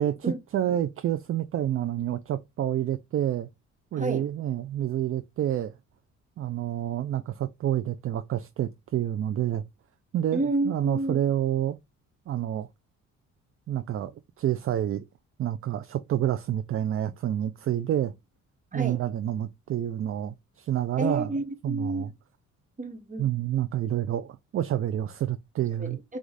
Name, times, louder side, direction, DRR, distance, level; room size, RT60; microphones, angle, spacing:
voice 1, 0.0-3.5 3.9-5.7 6.4-9.6 10.1-11.8 12.3-12.7 13.7-15.0 15.4-18.1 18.7-21.3 21.6-22.1 23.2-26.0, right 11 dB, 45° right, 0.4 m, -28 dB
voice 2, 3.9-4.3 10.3-11.2 18.7-19.0 21.0-22.1 22.8-23.3 25.8-26.2, right 2 dB, 25° right, 1.1 m, -30 dB
4.7 x 2.4 x 3.9 m
cardioid pair, 90°, 30 cm